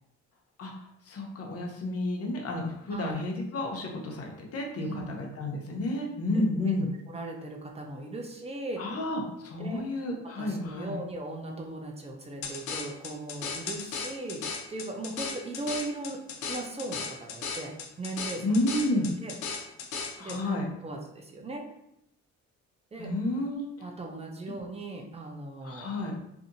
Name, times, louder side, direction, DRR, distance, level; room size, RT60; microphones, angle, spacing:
voice 1, 1.1-6.9 8.8-11.0 18.4-19.1 20.2-20.7 23.0-23.6 25.6-26.1, left 1 dB, 50° left, 1 dB, 0.8 m, -31 dB
voice 2, 2.9-3.2 4.8-5.2 6.3-6.8 7.1-8.9 9.6-16.2 16.5-18.5 18.9-19.4 20.2-21.7 22.9-23.1 23.8-26.2, right 2 dB, 20° right, 2 dB, 0.5 m, -38 dB
sound 1, 12.4-20.4, left 5 dB, 90° left, 0.5 m, -36 dB
2.6 x 2.6 x 2.6 m, 0.80 s
cardioid pair, 90°, 30 cm